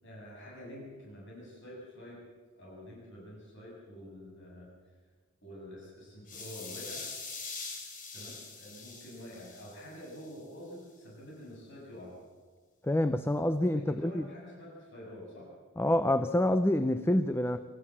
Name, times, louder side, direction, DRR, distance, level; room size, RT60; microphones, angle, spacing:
voice 1, 0.0-2.2 2.6-4.7 5.4-7.1 8.1-12.2 13.7-15.5, equal, 55° left, -3 dB, 7.6 m, -47 dB
sound 1, 6.3-10.3, left 4 dB, 40° left, 3.9 m, -43 dB
voice 2, 12.8-14.2 15.8-17.6, left 1 dB, 10° left, 11 dB, 0.6 m, -27 dB
26.5 x 14.0 x 7.3 m, 1.4 s
head